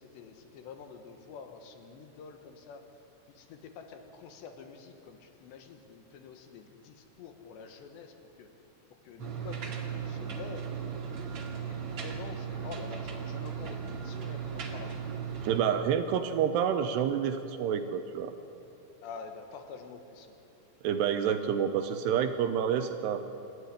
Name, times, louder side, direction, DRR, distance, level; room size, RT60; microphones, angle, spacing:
voice 1, 0.0-2.8 3.3-8.5 9.0-10.7 11.7-15.0 19.0-20.3, left 5 dB, 70° left, 6 dB, 3.4 m, -47 dB
sound 1, 9.2-15.6, right 7 dB, 45° right, 2.2 m, -37 dB
voice 2, 15.4-18.3 20.8-23.2, right 8 dB, 80° right, 8 dB, 2.6 m, -28 dB
27.5 x 13.0 x 9.9 m, 2.9 s
omnidirectional pair, 5.4 m